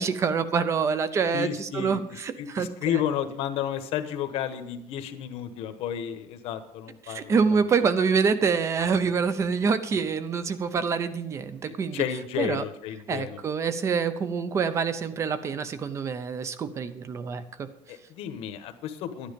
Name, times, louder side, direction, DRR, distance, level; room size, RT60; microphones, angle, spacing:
voice 1, 0.0-3.0 7.0-12.1 12.4-12.6 13.1-17.7, right 5 dB, 25° right, 13 dB, 0.7 m, -26 dB
voice 2, 1.3-2.0 2.4-7.4 11.6-13.4 17.9-19.3, left 10 dB, 65° left, 9 dB, 1.2 m, -32 dB
12.0 x 10.0 x 5.2 m, 0.83 s
cardioid pair, 175°, 11 cm